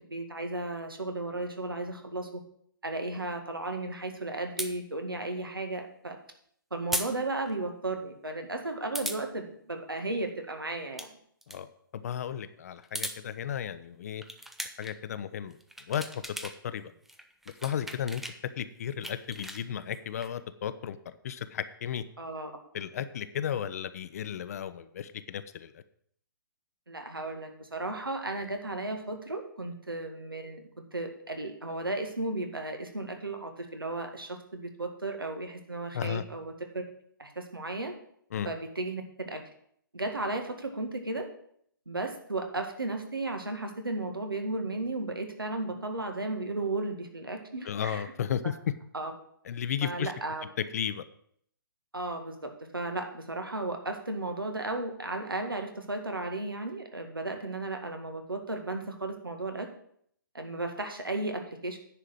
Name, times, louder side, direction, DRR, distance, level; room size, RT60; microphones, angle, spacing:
voice 1, 0.1-2.4 2.8-6.2 6.7-11.1 22.2-22.5 26.9-36.8 37.2-37.9 38.5-39.4 39.9-41.3 41.9-48.0 48.9-49.1 49.8-50.4 51.9-59.7 60.3-61.8, right 2 dB, 80° right, 5 dB, 1.9 m, -34 dB
sound 1, 4.6-4.7 6.9-7.1 7.5-7.6 8.9-9.2 10.7-11.1 11.4-11.6 12.7-13.2 14.2-14.9 15.5-16.6 16.9-18.4 18.8-20.3, right 1 dB, ahead, 0.5 m, -37 dB
voice 2, 11.5-14.2 14.8-15.6 15.9-16.0 16.4-16.9 17.6-18.2 18.6-22.0 22.7-25.8 35.9-36.2 38.3-38.5 47.6-48.7 49.4-50.1 50.7-51.0, left 9 dB, 45° left, 12 dB, 0.7 m, -34 dB
10.0 x 4.8 x 7.8 m, 0.66 s
figure-of-eight pair, 130°, 12 cm